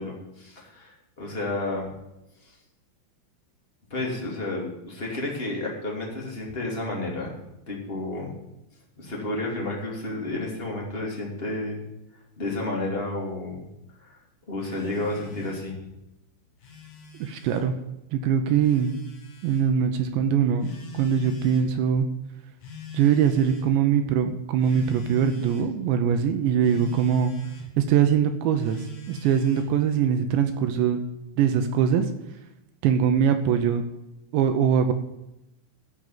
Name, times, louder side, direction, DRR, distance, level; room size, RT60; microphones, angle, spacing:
voice 1, 0.0-1.9 2.4-2.5 3.9-7.3 7.7-8.3 9.0-11.8 12.4-13.6 14.0-14.2 14.5-15.8, left 2 dB, 20° left, -2 dB, 1.5 m, -31 dB
Telephone, 14.6-15.7 16.4-17.7 18.6-19.7 20.6-21.7 22.6-23.7 24.6-25.7 26.6-27.7 28.6-29.8, left 1 dB, 55° left, 2.5 m, -42 dB
voice 2, 17.2-17.7 18.1-19.0 19.4-22.1 22.9-27.3 27.8-31.0 31.4-32.1 32.8-33.9 34.3-34.9, right 8 dB, 75° right, 7 dB, 2.7 m, -22 dB
13.5 x 5.4 x 9.2 m, 0.92 s
omnidirectional pair, 5.8 m